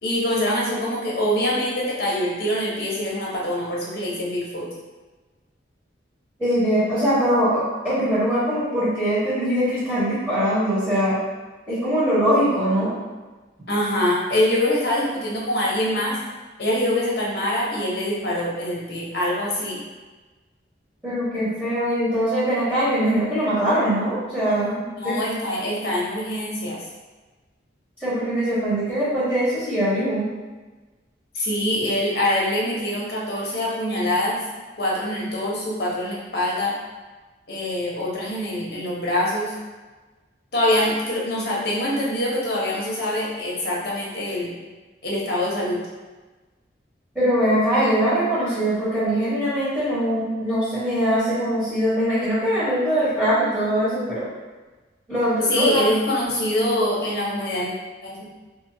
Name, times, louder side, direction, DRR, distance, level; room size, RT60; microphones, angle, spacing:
voice 1, 0.0-4.7 13.7-16.2 16.6-19.8 25.0-26.8 31.3-34.4 34.8-36.7 37.5-39.5 40.5-44.5 45.0-45.8 55.5-57.7 58.0-58.3, left 1 dB, 55° left, -5 dB, 0.7 m, -24 dB
voice 2, 6.4-11.2 11.7-12.9 21.0-25.1 28.0-30.2 47.1-54.2 55.1-55.8, equal, 10° right, -13 dB, 1.1 m, -22 dB
2.7 x 2.3 x 2.6 m, 1.3 s
head